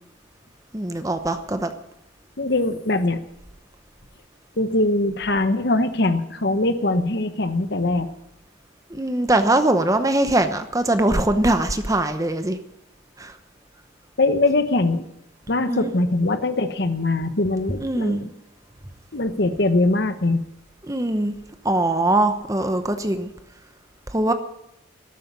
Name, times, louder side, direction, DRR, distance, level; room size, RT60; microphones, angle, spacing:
voice 1, 0.7-1.7 8.9-12.6 13.2-13.3 15.7-15.9 17.8-18.2 20.8-21.3 21.6-23.3 24.1-24.3, right 1 dB, 15° right, 9 dB, 0.9 m, -21 dB
voice 2, 2.4-3.2 4.6-8.1 14.2-15.1 15.5-18.3 19.1-20.4, left 2 dB, 55° left, 10 dB, 1.0 m, -22 dB
13.0 x 8.5 x 9.5 m, 0.85 s
head